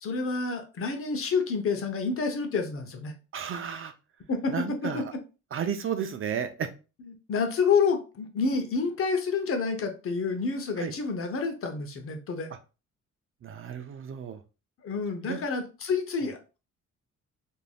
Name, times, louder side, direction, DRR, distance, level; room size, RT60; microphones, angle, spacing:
voice 1, 0.0-3.1 4.3-4.5 4.8-5.0 7.1-12.5 14.8-16.4, left 5 dB, 45° left, 6 dB, 0.7 m, -28 dB
voice 2, 3.3-3.9 4.5-5.1 5.5-6.7 10.8-10.9 13.4-14.4 15.3-15.4, right 8 dB, 45° right, 8 dB, 0.4 m, -33 dB
3.2 x 2.6 x 2.2 m, 0.31 s
cardioid pair, 90°, 30 cm